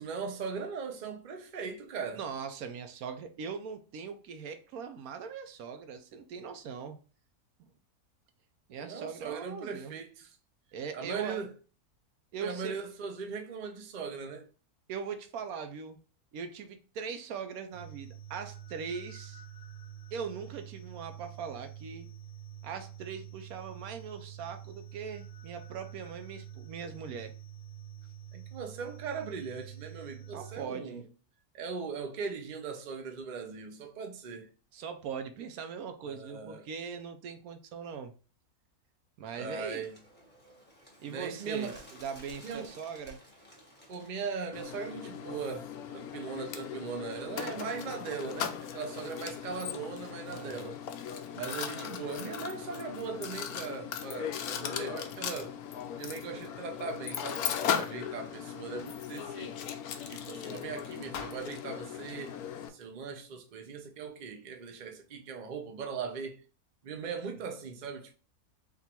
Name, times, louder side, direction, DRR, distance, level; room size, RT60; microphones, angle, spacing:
voice 1, 0.0-2.2 8.8-10.4 10.9-11.5 12.4-14.5 28.3-31.0 31.5-34.5 36.0-36.7 39.4-40.0 41.1-41.8 42.4-42.7 43.9-50.8 51.3-55.6 56.0-59.6 60.0-62.3 62.7-66.4 66.8-68.2, right 5 dB, 50° right, 0.5 m, -39 dB
voice 2, 2.1-7.0 8.7-10.0 10.7-11.4 12.3-12.8 14.9-16.0 16.3-19.4 20.1-22.1 22.6-27.3 30.3-31.0 34.7-38.1 39.2-39.9 41.0-43.2 50.3-50.8, right 6 dB, 75° right, 1.1 m, -40 dB
sound 1, 17.7-30.6, right 10 dB, 50° left, 1.0 m, -47 dB
Bird, 39.3-44.6, equal, 10° left, 1.0 m, -55 dB
Mechanisms, 44.5-62.7, left 8 dB, 80° left, 1.1 m, -38 dB
3.6 x 2.4 x 4.2 m
omnidirectional pair, 1.6 m